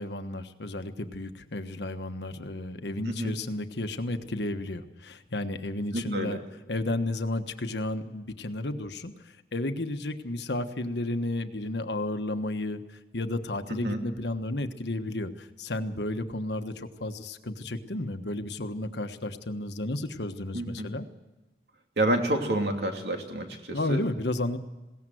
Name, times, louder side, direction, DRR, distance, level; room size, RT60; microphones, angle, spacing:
voice 1, 0.0-6.4 6.7-21.1 23.7-24.6, left 1 dB, 75° left, 8 dB, 1.3 m, -32 dB
voice 2, 5.9-6.4 13.8-14.0 20.5-20.9 22.0-24.0, right 1 dB, 70° right, 3 dB, 2.9 m, -29 dB
21.0 x 18.0 x 7.8 m, 1.1 s
head